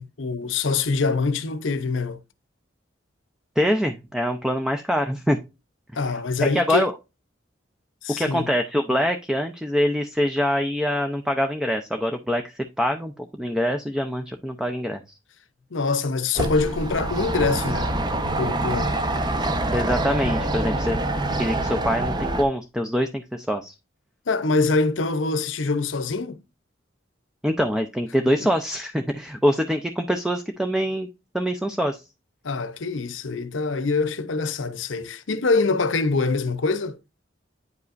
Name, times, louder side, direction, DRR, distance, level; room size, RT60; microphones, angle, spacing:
voice 1, 0.0-2.2 5.9-6.9 8.0-8.5 15.7-17.9 18.4-19.0 24.3-26.4 32.4-37.0, left 3 dB, 85° left, 0.8 m, -24 dB
voice 2, 3.6-5.4 6.4-6.9 8.2-15.0 19.7-21.0 21.4-23.7 27.4-31.1 31.3-32.0, equal, 5° right, 0.6 m, -24 dB
sound 1, 16.4-22.4, right 1 dB, 25° right, 0.9 m, -25 dB
9.4 x 5.4 x 2.5 m
head